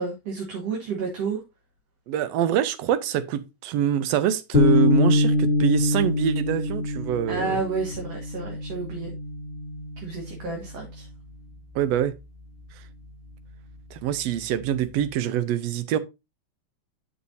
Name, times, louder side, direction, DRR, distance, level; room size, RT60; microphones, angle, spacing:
voice 1, 0.0-1.4 7.3-9.1 10.0-11.0, right 4 dB, 60° right, 2.6 m, -30 dB
voice 2, 2.1-7.6 11.7-12.1 13.9-16.0, right 10 dB, 75° right, 1.6 m, -25 dB
sound 1, 4.5-11.0, left 2 dB, 40° left, 0.8 m, -24 dB
9.1 x 6.3 x 2.6 m
omnidirectional pair, 3.4 m